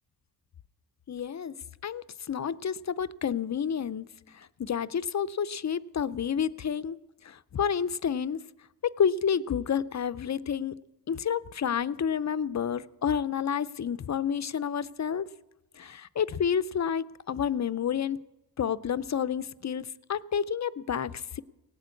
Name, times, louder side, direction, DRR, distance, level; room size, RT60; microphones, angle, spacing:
voice 1, 1.1-1.5 1.8-4.1 4.6-7.0 7.2-8.4 8.8-10.7 11.1-15.3 15.8-18.2 18.6-21.4, left 7 dB, 45° left, 16 dB, 0.5 m, -29 dB
18.0 x 8.2 x 8.2 m, 0.97 s
wide cardioid pair, 105°, 42 cm